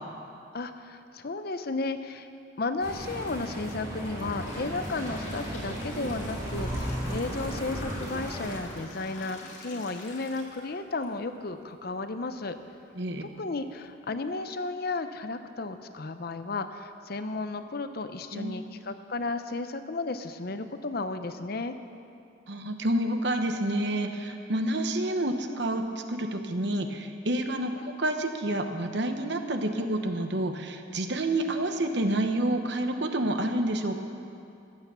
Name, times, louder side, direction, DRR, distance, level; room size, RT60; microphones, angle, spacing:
voice 1, 0.5-2.3 2.6-12.6 13.2-21.7, left 3 dB, 50° left, 9 dB, 0.6 m, -34 dB
sound 1, 2.8-8.6, right 1 dB, 20° right, 3.1 m, -35 dB
sound 2, 4.2-11.0 11.5-11.6 12.5-12.6 13.1-13.2 13.6-13.8, left 2 dB, 75° left, 2.6 m, -46 dB
voice 2, 12.9-13.3 18.3-18.5 22.5-34.0, right 1 dB, 60° right, 6 dB, 1.0 m, -29 dB
14.5 x 9.1 x 6.9 m, 2.6 s
head